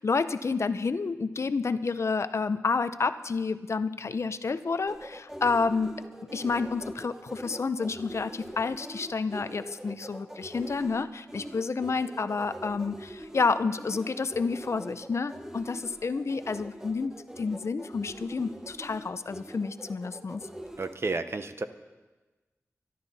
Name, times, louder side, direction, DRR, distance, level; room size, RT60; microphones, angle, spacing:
voice 1, 0.0-6.0 6.3-20.5, left 4 dB, 60° left, 12 dB, 0.6 m, -30 dB
sound 1, 4.9-20.9, equal, 10° right, 1.0 m, -43 dB
voice 2, 20.8-21.6, right 3 dB, 50° right, 10 dB, 0.8 m, -31 dB
24.0 x 12.0 x 4.1 m, 1.2 s
wide cardioid pair, 95°, 5 cm